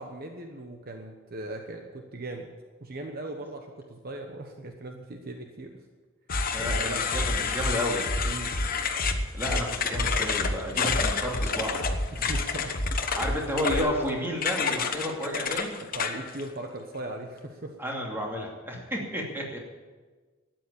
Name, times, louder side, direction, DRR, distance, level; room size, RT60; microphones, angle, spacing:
voice 1, 0.0-2.5 2.8-5.8 6.6-7.0 8.2-8.6 9.5-9.7 12.1-12.8 15.9-17.7, right 2 dB, 45° right, 3 dB, 1.1 m, -39 dB
Bass drum, 6.3-6.8 7.1-7.7 8.0-8.7 9.0-9.6 9.9-10.5 10.9-11.5 11.8-12.4 12.7-13.3 13.7-13.8, equal, 75° left, 1.8 m, -29 dB
sound 1, 6.3-16.4, left 6 dB, 45° left, 1.1 m, -30 dB
voice 2, 6.5-8.0 9.0-11.8 12.2-12.3 13.2-15.8 17.8-19.6, equal, 10° right, -2 dB, 2.7 m, -31 dB
13.0 x 9.3 x 8.7 m, 1.4 s
head